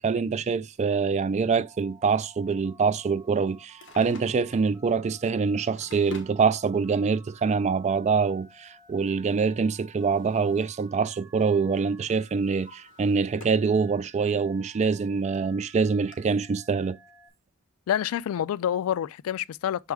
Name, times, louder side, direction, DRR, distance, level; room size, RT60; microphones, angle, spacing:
voice 1, 0.0-17.0, right 5 dB, 35° right, 0.3 m, -25 dB
Telephone, 1.6-17.3, right 3 dB, 15° right, 2.4 m, -55 dB
Drawer open or close, 3.6-4.7 5.4-6.4 7.5-7.6 9.3-10.9 11.2-11.6 12.1-13.7 14.2-14.3 15.0-15.1 15.3-15.4 16.1-16.2, left 3 dB, 60° left, 1.4 m, -48 dB
voice 2, 17.9-19.9, left 10 dB, 80° left, 0.3 m, -27 dB
6.3 x 4.6 x 3.5 m
head